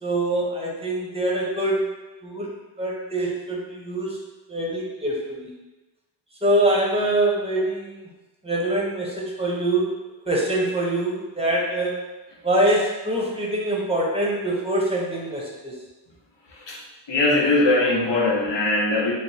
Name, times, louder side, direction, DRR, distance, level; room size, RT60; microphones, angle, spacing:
voice 1, 0.0-1.9 2.2-2.5 2.8-4.2 4.5-5.5 6.4-8.1 8.4-9.9 10.3-12.0 12.4-15.7, right 1 dB, 15° right, -3 dB, 0.8 m, -24 dB
voice 2, 16.5-16.8 17.1-19.1, left 2 dB, 75° left, -4 dB, 0.8 m, -21 dB
3.1 x 2.1 x 4.1 m, 1.1 s
wide cardioid pair, 45°, 44 cm